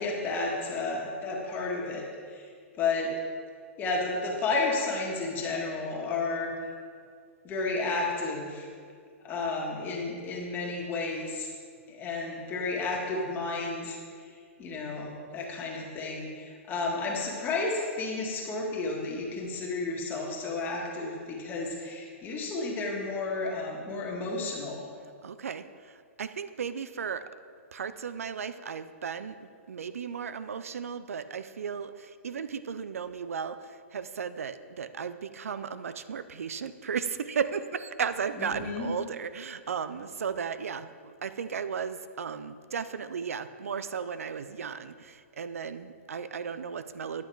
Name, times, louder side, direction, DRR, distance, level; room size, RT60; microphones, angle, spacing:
voice 1, 0.0-2.5 2.8-3.1 3.8-6.5 7.4-8.7 9.2-11.5 11.9-14.0 14.3-24.9 38.4-38.9, left 3 dB, 25° left, -2 dB, 1.7 m, -32 dB
voice 2, 25.2-27.2 27.7-47.2, right 6 dB, 90° right, 13 dB, 0.4 m, -35 dB
10.5 x 5.5 x 4.6 m, 2.1 s
hypercardioid pair, 130°, 7 cm